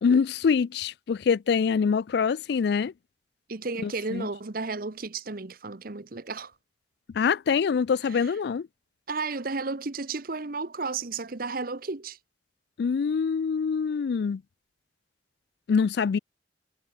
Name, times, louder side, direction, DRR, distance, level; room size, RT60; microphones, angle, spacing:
voice 1, 0.0-2.9 3.8-4.3 7.2-8.7 12.8-14.4 15.7-16.2, left 6 dB, 60° left, 0.3 m, -25 dB
voice 2, 3.5-6.5 8.0-8.3 9.1-12.2, right 4 dB, 50° right, 1.0 m, -33 dB
head